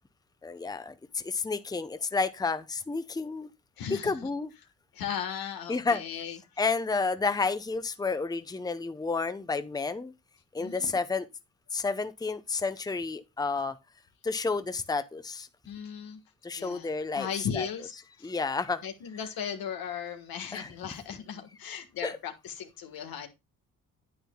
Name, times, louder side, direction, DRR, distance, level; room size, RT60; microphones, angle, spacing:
voice 1, 0.4-3.5 3.9-4.5 5.7-6.0 6.6-10.1 10.5-11.3 11.7-13.8 14.2-15.5 16.4-17.3 17.6-17.7 18.2-18.8 20.5-20.7 22.0-22.2, left 4 dB, 10° left, 0.7 m, -30 dB
voice 2, 3.8-4.3 4.9-6.4 10.6-11.0 15.6-16.2 16.5-17.9 18.2-18.3 18.8-23.3, left 8 dB, 80° left, 1.5 m, -37 dB
9.4 x 9.1 x 2.2 m
cardioid pair, 75°, 35 cm